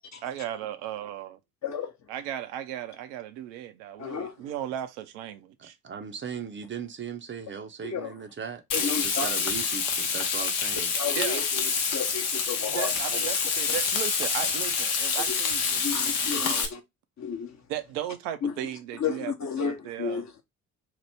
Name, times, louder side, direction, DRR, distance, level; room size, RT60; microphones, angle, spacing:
voice 1, 0.2-1.4 2.1-5.8 11.1-11.5 12.7-16.7 17.7-20.3, right 11 dB, 70° right, 0.5 m, -36 dB
voice 2, 4.0-4.3 7.8-8.1 8.7-9.3 10.9-11.4 11.9-12.9 15.8-16.8 17.2-17.5 18.4-18.5 19.0-20.4, left 6 dB, 40° left, 0.8 m, -32 dB
voice 3, 5.6-10.9, right 7 dB, 30° right, 0.5 m, -38 dB
Frying (food), 8.7-16.7, left 5 dB, 70° left, 0.8 m, -27 dB
2.9 x 2.0 x 3.3 m
hypercardioid pair, 45°, 43 cm